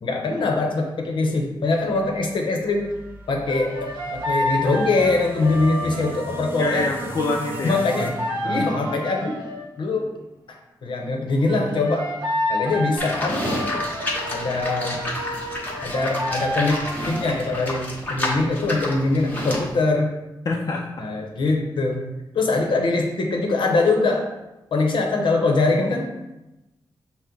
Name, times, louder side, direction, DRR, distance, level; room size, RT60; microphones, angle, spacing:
voice 1, 0.0-2.9 3.3-6.9 7.6-8.1 8.4-9.4 9.8-10.1 10.5-12.1 12.5-13.5 14.3-15.0 15.8-20.2 21.0-22.0 22.3-24.3 24.7-26.1, left 3 dB, 75° left, 1 dB, 0.7 m, -23 dB
sound 1, 1.8-10.1, right 1 dB, 25° right, 0.6 m, -39 dB
sound 2, 3.5-9.7 11.5-17.7, left 1 dB, 65° right, 0.8 m, -30 dB
voice 2, 6.6-8.1 8.4-8.7 20.5-21.0, left 3 dB, 50° left, -1 dB, 0.4 m, -26 dB
Livestock farm animals working animals, 13.0-19.7, left 1 dB, 20° left, 0.9 m, -29 dB
5.7 x 2.1 x 3.8 m, 1.0 s
wide cardioid pair, 130°, 8 cm